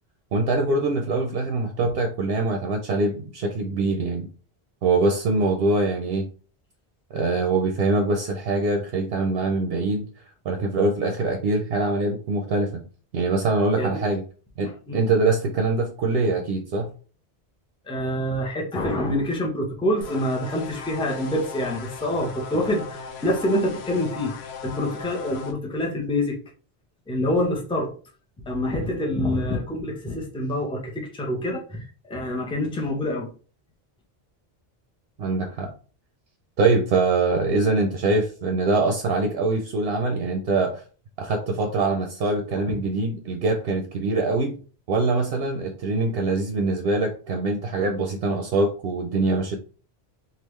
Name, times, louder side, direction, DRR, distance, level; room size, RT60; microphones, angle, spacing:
voice 1, 0.3-4.3 4.8-6.3 7.1-10.1 10.5-12.8 13.1-14.2 14.6-16.9 35.2-35.7 36.6-40.8 41.2-44.6 44.9-49.6, right 3 dB, 70° right, 0.8 m, -23 dB
voice 2, 14.6-15.0 17.8-26.4 27.1-27.9 28.4-33.3 42.7-42.8, left 1 dB, 5° left, 0.6 m, -26 dB
sound 1, 20.0-25.5, left 5 dB, 80° left, 0.9 m, -37 dB
3.5 x 2.4 x 3.1 m
omnidirectional pair, 1.1 m